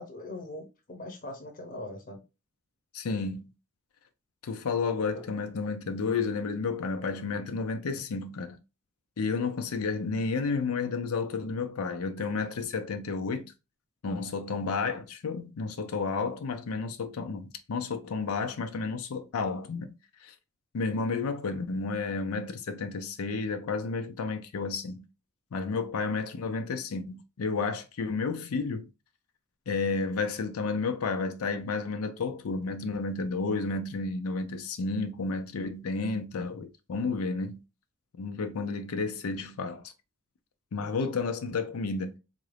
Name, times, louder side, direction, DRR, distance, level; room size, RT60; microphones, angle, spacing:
voice 1, 0.0-2.2 5.1-5.2 38.6-38.8, left 2 dB, 40° left, 0.7 m, -41 dB
voice 2, 2.9-3.5 4.4-8.6 9.2-13.5 14.0-19.9 20.2-20.3 20.7-25.1 25.5-28.9 29.7-37.6 38.2-39.9 40.7-42.2, left 4 dB, 85° left, 0.5 m, -31 dB
3.7 x 2.5 x 3.2 m
head